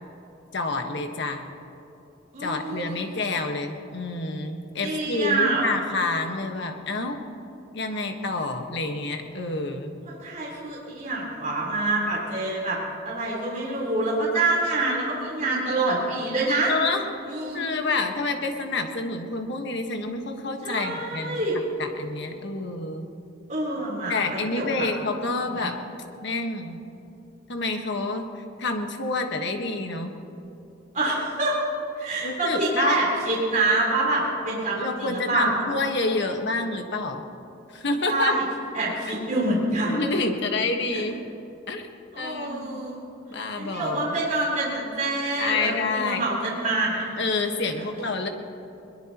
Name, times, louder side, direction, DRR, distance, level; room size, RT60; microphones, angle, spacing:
voice 1, 0.5-1.5 2.4-7.2 7.7-9.9 16.7-17.0 17.5-21.4 21.8-23.1 24.1-25.8 26.2-26.8 27.5-30.1 32.2-33.1 34.8-37.3 37.7-38.3 39.8-41.3 41.7-41.8 42.1-42.8 43.3-44.1 45.4-46.3 47.2-48.3, left 3 dB, 65° left, 4 dB, 1.5 m, -28 dB
voice 2, 2.3-3.0 4.8-5.7 10.1-12.8 13.1-16.7 17.3-17.6 20.6-21.6 23.5-24.9 25.6-25.7 30.9-31.6 32.0-35.7 38.1-38.4 38.7-40.0 40.9-41.0 42.1-43.0 43.5-47.1, right 2 dB, 40° right, -6 dB, 4.0 m, -26 dB
21.5 x 21.5 x 3.0 m, 2.8 s
head